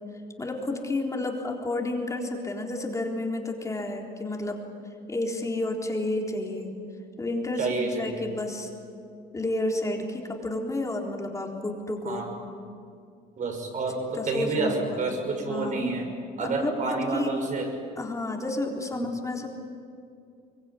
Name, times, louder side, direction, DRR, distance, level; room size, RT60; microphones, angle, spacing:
voice 1, 0.4-4.6 5.1-6.7 7.2-8.7 9.3-12.3 14.1-14.8 15.5-15.9 16.4-17.3 18.0-19.5, left 2 dB, 20° left, 1 dB, 3.9 m, -31 dB
voice 2, 7.6-8.2 12.0-12.3 13.4-16.1 16.4-17.7 18.9-19.0, right 3 dB, 50° right, 3 dB, 6.3 m, -29 dB
23.5 x 23.5 x 9.9 m, 2.4 s
cardioid pair, 110°, 17 cm